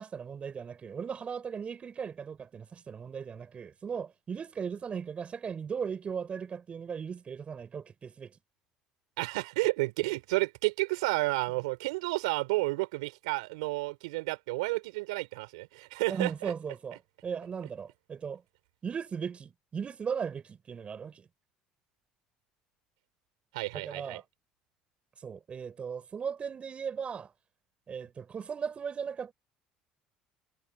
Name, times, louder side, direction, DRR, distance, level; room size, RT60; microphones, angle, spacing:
voice 1, 0.0-8.4 16.1-18.4 18.8-21.3 23.7-24.2 25.2-27.3 27.9-29.3, right 6 dB, 40° right, 5.9 m, -37 dB
voice 2, 9.2-16.5 23.5-24.2, right 23 dB, 80° right, 6.1 m, -31 dB
hypercardioid pair, 70°, 3 cm